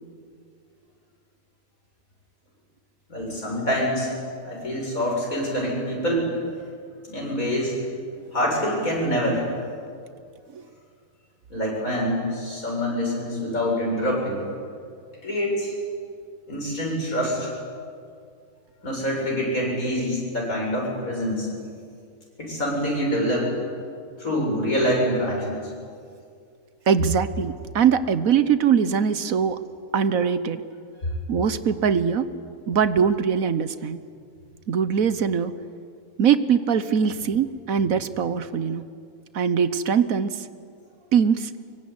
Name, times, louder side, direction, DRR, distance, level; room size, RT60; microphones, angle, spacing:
voice 1, 3.1-4.1 4.4-6.3 7.0-7.7 8.3-9.4 11.5-14.4 15.2-15.7 16.5-17.5 18.8-21.5 22.4-23.6 24.2-25.6, equal, 65° left, -2 dB, 7.9 m, -25 dB
voice 2, 26.9-29.6 29.9-30.6 31.3-32.2 32.7-34.0 34.7-35.5 36.2-38.8 39.3-40.5 41.1-41.5, right 7 dB, 65° right, 13 dB, 1.4 m, -22 dB
24.0 x 23.5 x 9.6 m, 2.3 s
omnidirectional pair, 1.6 m